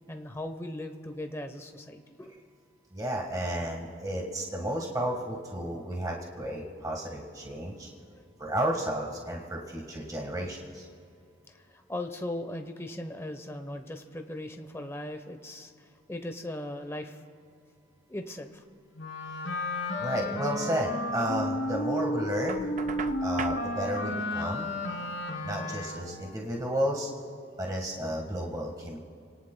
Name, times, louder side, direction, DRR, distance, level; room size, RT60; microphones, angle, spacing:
voice 1, 0.1-2.4 8.1-8.2 11.7-17.2 18.1-18.6, left 1 dB, 15° left, 6 dB, 0.9 m, -38 dB
voice 2, 2.9-7.9 8.4-10.9 20.0-22.7 23.2-24.7 25.4-27.1 27.6-29.0, equal, 20° right, 0 dB, 1.5 m, -32 dB
Wind instrument woodwind instrument, 19.0-26.2, left 1 dB, 75° left, 2.9 m, -32 dB
Knock, 22.5-23.6, right 6 dB, 40° right, 0.4 m, -38 dB
29.5 x 18.0 x 2.2 m, 2.5 s
head